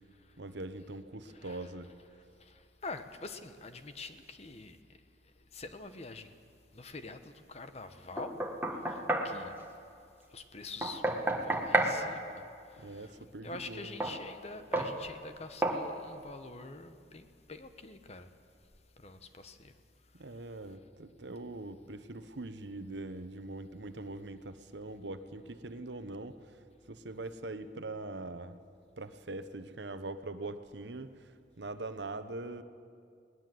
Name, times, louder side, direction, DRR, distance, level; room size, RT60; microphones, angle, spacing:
voice 1, 0.4-1.9 12.8-13.9 20.2-26.3 26.9-28.5 29.0-31.1 31.6-32.6, right 2 dB, 75° right, 1.0 m, -42 dB
voice 2, 1.3-1.9 2.4-4.8 5.5-6.4 6.7-8.4 8.9-9.0 9.2-9.5 10.3-11.0 11.4-12.4 12.7-18.3 19.0-19.7, left 3 dB, 35° left, 1.1 m, -46 dB
Knock, 8.2-9.3 10.8-12.0 14.0-14.2 14.7-14.9 15.6-15.8, right 1 dB, 10° right, 1.6 m, -30 dB
21.5 x 19.0 x 7.8 m
head